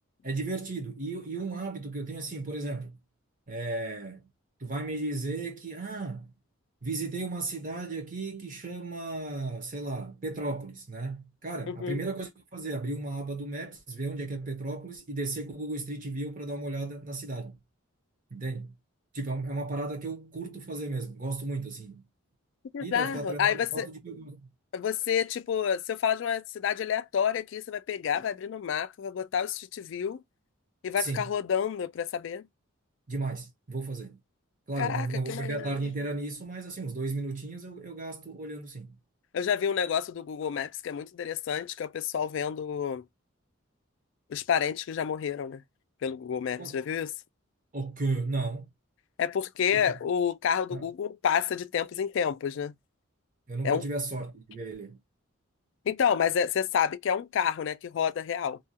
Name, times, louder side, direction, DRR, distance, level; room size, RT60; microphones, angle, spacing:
voice 1, 0.2-2.9 3.5-4.2 4.6-6.3 6.8-17.6 18.3-18.7 19.1-22.0 22.8-24.4 31.0-31.3 33.1-34.2 34.7-39.0 46.6-46.8 47.7-48.7 49.7-49.8 50.7-50.8 53.5-55.0, right 3 dB, 40° right, 0.8 m, -34 dB
voice 2, 11.7-12.0 22.7-23.9 24.7-30.2 30.8-32.5 34.8-35.7 39.3-43.0 44.3-45.6 46.0-47.1 49.2-52.7 53.6-53.8 55.9-58.6, left 8 dB, 65° left, 0.3 m, -29 dB
2.7 x 2.3 x 2.7 m
head